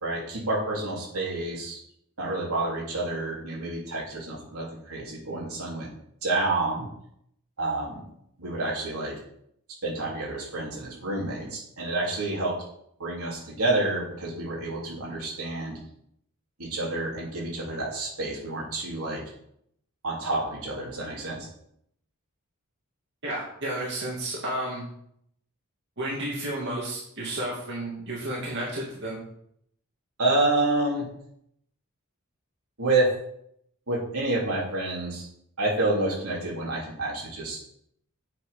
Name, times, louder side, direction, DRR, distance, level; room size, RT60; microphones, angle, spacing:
voice 1, 0.0-1.8 2.2-5.9 6.2-6.9 7.6-8.0 8.4-9.2 9.8-12.6 13.0-15.8 16.6-19.2 20.0-21.5 30.2-31.1 32.8-33.1 33.9-35.3 35.6-37.6, right 2 dB, 75° right, -3 dB, 3.5 m, -28 dB
voice 2, 23.2-24.8 26.0-29.2, right 1 dB, 50° right, -5 dB, 2.3 m, -32 dB
8.4 x 6.1 x 5.7 m, 0.71 s
head